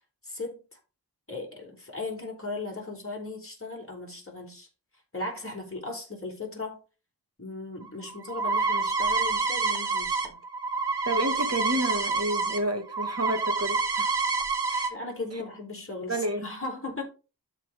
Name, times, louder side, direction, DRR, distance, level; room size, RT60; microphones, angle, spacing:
voice 1, 0.2-0.8 1.3-4.7 5.1-6.8 7.4-10.4 14.9-17.0, left 3 dB, 35° left, 4.1 m, -37 dB
sound 1, 7.8-12.6 12.9-14.9, right 4 dB, 80° right, 1.3 m, -27 dB
voice 2, 11.1-14.2 14.7-14.9 16.1-16.4, right 1 dB, 40° right, 1.9 m, -30 dB
12.5 x 4.5 x 3.7 m
wide cardioid pair, 65°, 40 cm